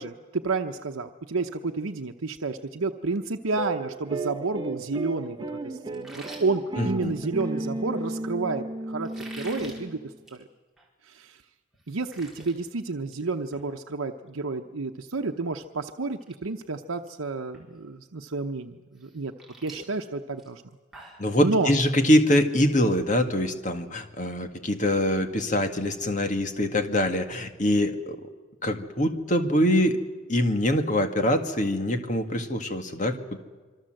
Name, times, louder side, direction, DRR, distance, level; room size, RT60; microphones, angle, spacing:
voice 1, 0.0-10.5 11.0-11.4 11.9-19.3 19.6-20.6 21.4-21.7, right 3 dB, 85° right, 5 dB, 0.9 m, -30 dB
sound 1, 3.5-10.1, right 2 dB, 20° right, 1.3 m, -34 dB
sound 2, 5.9-7.5 9.0-9.8 10.2-10.4 10.8-10.9 11.4-11.5 11.7-12.5 12.9-13.2 13.5-13.7 15.5-15.6 16.1-16.3 16.6-17.1 17.5-17.6 19.0-21.3, right 2 dB, ahead, 4.8 m, -46 dB
voice 2, 6.8-7.1 21.2-28.2 28.6-30.0 30.3-33.4, left 1 dB, 35° left, 6 dB, 1.9 m, -24 dB
26.0 x 24.5 x 7.8 m, 1.4 s
head